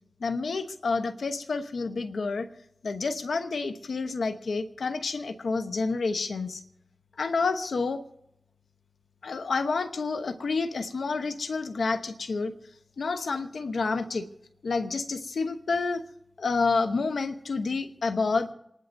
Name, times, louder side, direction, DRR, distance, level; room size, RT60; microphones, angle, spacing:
voice 1, 0.2-2.5 2.8-6.6 7.2-8.0 9.2-12.5 13.0-14.2 14.6-16.0 16.4-18.5, left 4 dB, 85° left, 9 dB, 0.9 m, -29 dB
27.5 x 11.5 x 2.6 m, 0.81 s
cardioid pair, 40°, 0 cm